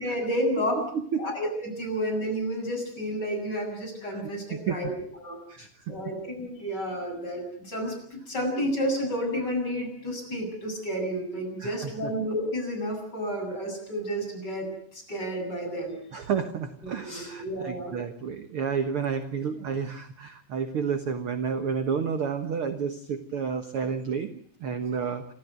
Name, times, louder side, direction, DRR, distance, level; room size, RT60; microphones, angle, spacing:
voice 1, 0.0-0.9 1.2-4.9 5.2-5.4 5.9-15.9 17.0-17.9, equal, 25° left, 1 dB, 8.6 m, -31 dB
voice 2, 0.9-1.3 4.1-4.2 4.5-4.8 5.5-5.7 11.6-12.1 16.1-25.3, right 6 dB, 55° right, 8 dB, 1.5 m, -30 dB
29.5 x 14.0 x 9.3 m, 0.64 s
omnidirectional pair, 4.0 m